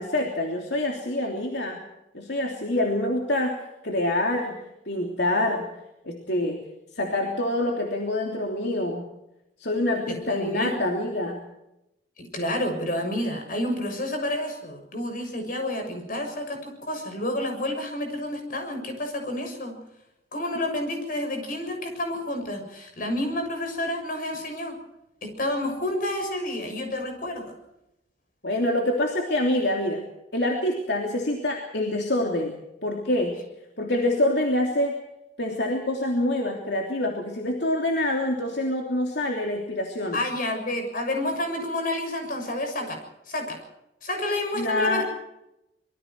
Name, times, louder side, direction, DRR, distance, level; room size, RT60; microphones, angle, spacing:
voice 1, 0.0-1.8 2.1-4.6 4.9-5.7 6.0-6.6 6.9-9.1 9.6-11.4 28.4-30.0 30.3-33.4 33.8-35.0 35.4-40.2 44.5-45.0, left 1 dB, 65° left, 1 dB, 3.2 m, -26 dB
voice 2, 10.1-10.8 12.2-19.7 20.3-24.8 25.2-27.4 40.1-43.0 43.3-43.6 44.0-45.0, left 1 dB, 50° left, 4 dB, 7.0 m, -29 dB
26.0 x 23.0 x 4.7 m, 0.88 s
head